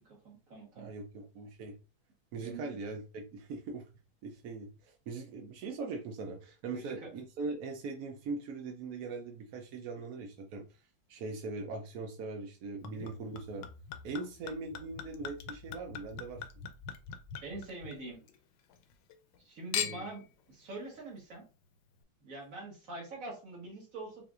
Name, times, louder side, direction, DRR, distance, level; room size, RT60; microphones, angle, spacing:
voice 1, 0.1-0.9 2.4-2.7 6.7-7.1 17.4-18.2 19.4-21.5 22.2-24.2, right 2 dB, 45° right, -1 dB, 1.7 m, -44 dB
voice 2, 0.8-1.7 2.3-3.9 4.2-10.8 11.1-13.6 14.0-16.5 19.8-20.0, right 3 dB, 70° right, 2 dB, 0.9 m, -41 dB
Chink clink / Liquid, 12.8-18.4 18.7-19.4 19.7-20.3 21.0-21.1, left 8 dB, 75° left, 1.2 m, -41 dB
5.7 x 2.6 x 2.4 m, 0.34 s
omnidirectional pair, 2.1 m